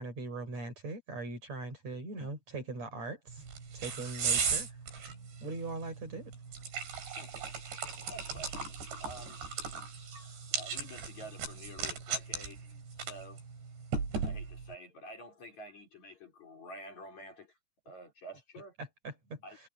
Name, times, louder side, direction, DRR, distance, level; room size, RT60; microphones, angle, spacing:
voice 1, 0.0-3.4 3.7-4.7 5.4-6.3 18.8-19.4, right 3 dB, 40° right, 6.6 m, -40 dB
sound 1, 3.3-14.7, right 5 dB, 85° right, 7.4 m, -37 dB
voice 2, 8.1-9.4 10.2-12.6 13.0-13.4 14.2-17.5 17.9-18.7 19.4-19.6, equal, 45° left, 5.3 m, -49 dB
omnidirectional pair, 4.9 m